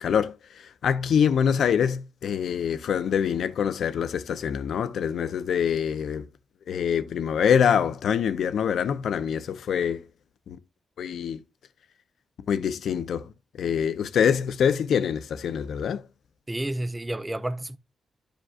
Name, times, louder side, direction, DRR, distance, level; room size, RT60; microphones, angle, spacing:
voice 1, 0.0-6.3 6.7-10.1 10.5-10.6 11.0-11.4 12.5-13.3 13.6-16.0, left 7 dB, 75° left, 0.6 m, -25 dB
voice 2, 16.5-17.8, right 1 dB, 15° right, 0.5 m, -30 dB
12.5 x 5.1 x 2.4 m
cardioid pair, 105°, 0 cm